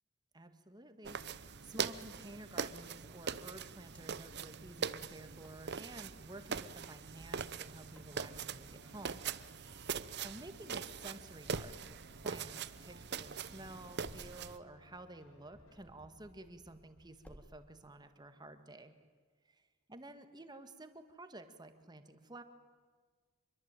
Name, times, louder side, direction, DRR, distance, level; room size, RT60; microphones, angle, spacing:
voice 1, 0.3-9.2 9.9-18.9 19.4-22.4, right 2 dB, 20° right, 8 dB, 1.9 m, -52 dB
sound 1, 1.0-14.6, right 6 dB, 50° right, 0.8 m, -42 dB
Wind, 3.7-17.5, equal, 5° left, 2.4 m, -63 dB
sound 2, 7.9-15.8, left 1 dB, 75° left, 4.1 m, -64 dB
26.0 x 23.0 x 9.1 m, 1.5 s
head